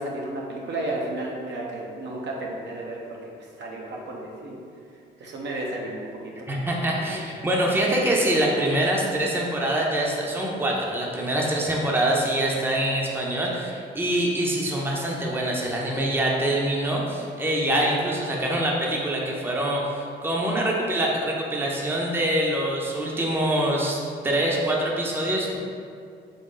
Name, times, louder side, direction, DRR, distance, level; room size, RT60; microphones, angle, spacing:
voice 1, 0.0-4.6 5.2-6.3 7.1-7.2, right 1 dB, 65° right, -2 dB, 0.8 m, -33 dB
voice 2, 6.5-24.0 24.2-25.6, right 1 dB, 10° right, -2 dB, 0.7 m, -24 dB
3.8 x 3.5 x 3.8 m, 2.4 s
cardioid pair, 90°, 20 cm